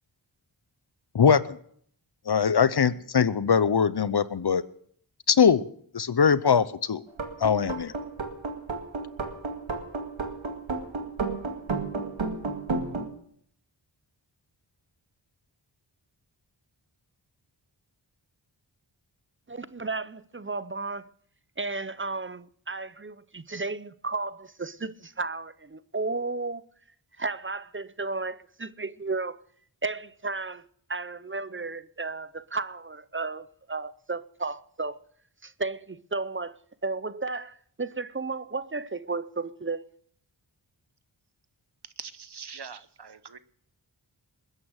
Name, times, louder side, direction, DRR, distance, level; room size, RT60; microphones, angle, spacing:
voice 1, 1.1-1.6 2.3-4.6 5.3-5.6 5.9-7.0 7.4-7.9, left 6 dB, 55° left, 0.8 m, -22 dB
sound 1, 7.1-13.1, right 3 dB, 80° right, 2.2 m, -32 dB
voice 2, 19.5-21.1 21.6-26.6 27.2-29.4 29.8-30.6 30.9-35.0 35.4-39.8, right 3 dB, 25° right, 0.6 m, -33 dB
voice 3, 42.0-43.4, right 6 dB, 60° right, 1.0 m, -42 dB
21.0 x 9.7 x 6.4 m
wide cardioid pair, 55°, 46 cm